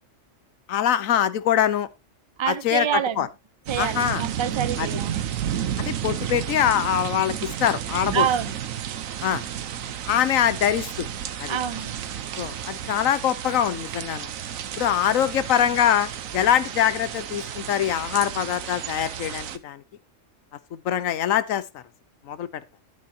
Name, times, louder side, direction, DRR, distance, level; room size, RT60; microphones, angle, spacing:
voice 1, 0.7-1.9 2.5-3.3 3.8-4.2 4.8-4.9 5.8-8.3 9.2-9.4 10.1-11.1 11.4-11.6 12.4-14.3 14.8-19.8 20.7-21.8 22.3-22.6, left 10 dB, 85° left, 1.2 m, -23 dB
voice 2, 2.4-3.2 3.7-5.3 8.1-8.6 11.5-11.9, right 8 dB, 35° right, 0.4 m, -26 dB
sound 1, 3.7-19.6, right 10 dB, 85° right, 1.3 m, -32 dB
12.0 x 9.1 x 2.8 m
omnidirectional pair, 1.3 m